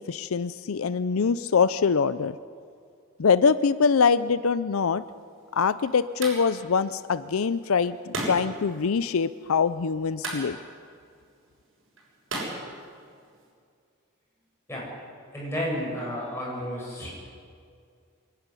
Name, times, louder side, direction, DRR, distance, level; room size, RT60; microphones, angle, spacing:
voice 1, 0.0-2.3 3.2-5.0 5.5-10.6, left 5 dB, 85° left, 15 dB, 0.5 m, -24 dB
sound 1, 5.0-13.5, right 2 dB, 65° right, 6.9 m, -39 dB
voice 2, 15.3-17.1, equal, 10° left, -5 dB, 7.7 m, -32 dB
24.5 x 11.5 x 9.7 m, 2.3 s
head